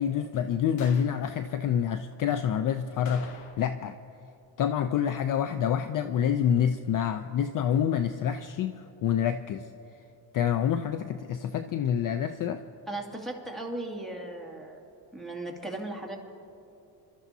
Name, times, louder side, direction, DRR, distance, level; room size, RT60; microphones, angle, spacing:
voice 1, 0.0-4.0 4.6-9.6 10.3-12.6, left 9 dB, 50° left, 9 dB, 0.5 m, -27 dB
sound 1, 0.8-1.2 3.1-3.9 4.2-4.3 9.3-9.4, left 4 dB, 80° left, 1.4 m, -47 dB
voice 2, 12.9-14.8 15.1-16.2, right 2 dB, ahead, 0 dB, 2.1 m, -37 dB
27.0 x 13.0 x 2.7 m, 2.9 s
cardioid pair, 115°, 43 cm